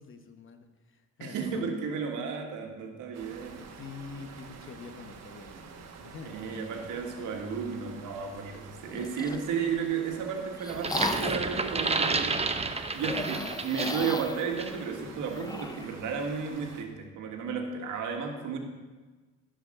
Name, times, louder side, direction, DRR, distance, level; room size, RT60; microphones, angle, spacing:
voice 1, 0.0-1.4 3.7-7.7 13.3-13.8, left 5 dB, 40° left, 7 dB, 1.2 m, -47 dB
voice 2, 1.2-3.7 6.2-18.6, right 6 dB, 85° right, 3 dB, 1.6 m, -33 dB
sound 1, 3.1-16.8, right 6 dB, 60° right, 1.3 m, -48 dB
sound 2, 8.8-9.5 10.1-11.6 12.9-16.0, left 3 dB, 15° left, 0.5 m, -37 dB
sound 3, 10.7-14.2 14.6-14.8, right 3 dB, 20° right, 0.8 m, -30 dB
14.0 x 5.1 x 6.5 m, 1.3 s
cardioid pair, 90°, 30 cm